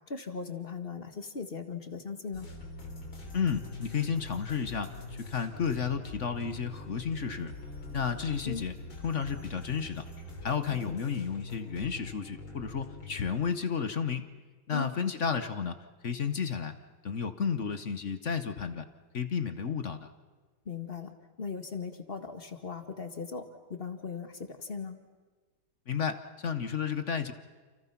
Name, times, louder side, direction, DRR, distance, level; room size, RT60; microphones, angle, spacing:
voice 1, 0.1-2.5 8.4-8.6 10.7-11.0 14.7-14.9 20.7-25.0, left 5 dB, 30° left, 7 dB, 1.9 m, -39 dB
sound 1, 2.3-13.3, left 2 dB, 85° left, 4.2 m, -43 dB
voice 2, 3.3-7.5 7.9-8.7 9.0-10.1 10.4-14.3 14.7-15.8 16.0-16.8 17.0-18.9 19.1-20.1 25.9-27.3, left 6 dB, 45° left, 10 dB, 1.2 m, -32 dB
29.5 x 29.0 x 5.9 m, 1.4 s
omnidirectional pair, 2.1 m